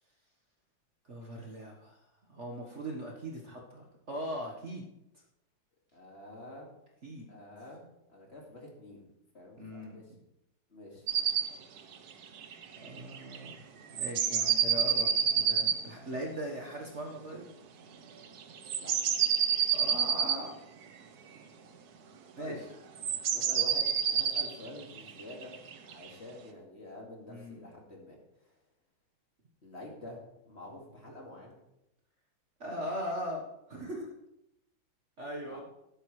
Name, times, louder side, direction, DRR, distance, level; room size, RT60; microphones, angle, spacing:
voice 1, 1.0-2.0 2.3-4.8 7.0-7.3 9.6-10.0 12.8-13.6 13.9-17.4 19.7-20.5 22.4-22.6 27.3-27.6 32.6-33.4 33.7-34.1 35.2-35.6, equal, 40° right, 0 dB, 1.5 m, -39 dB
voice 2, 5.9-6.7 7.3-10.0 10.7-11.1 18.8-19.1 22.4-22.6 23.0-25.5 25.8-28.2 28.4-28.5 29.6-30.2 30.5-31.6 35.5-35.6, left 1 dB, 35° left, -1 dB, 2.4 m, -48 dB
sound 1, 11.1-11.5 11.8-11.9 12.1-12.2 12.4-13.5 14.0-15.8 18.4-20.4 23.0-26.1, right 8 dB, 60° right, 1.3 m, -28 dB
12.0 x 12.0 x 3.2 m, 0.84 s
omnidirectional pair, 2.1 m